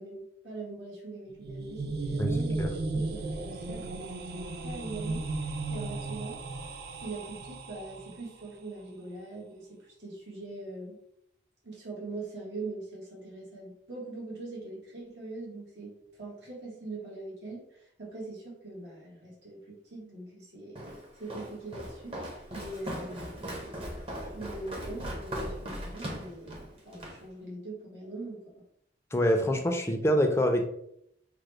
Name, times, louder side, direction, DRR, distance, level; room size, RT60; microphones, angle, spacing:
voice 1, 0.0-5.3 5.7-6.4 7.0-11.0 11.6-22.2 22.5-24.0 24.3-28.4, right 2 dB, 80° right, -4 dB, 1.2 m, -42 dB
sound 1, 1.3-8.3, right 2 dB, 55° right, 0.4 m, -35 dB
Walk footsteps, 20.8-27.2, equal, 30° right, 0.7 m, -39 dB
voice 2, 29.1-30.6, equal, 15° left, 4 dB, 0.4 m, -25 dB
4.9 x 2.1 x 3.2 m, 0.72 s
head